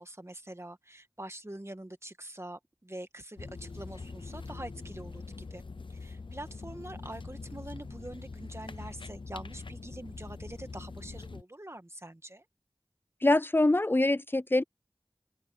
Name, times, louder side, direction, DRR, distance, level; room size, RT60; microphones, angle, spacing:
voice 1, 0.0-5.6 5.9-12.5, right 1 dB, 30° right, 2.0 m, -45 dB
sound 1, 3.4-11.4, left 4 dB, 80° left, 0.7 m, -43 dB
voice 2, 13.2-14.6, left 2 dB, 25° left, 0.4 m, -24 dB
wide cardioid pair, 45°, 9 cm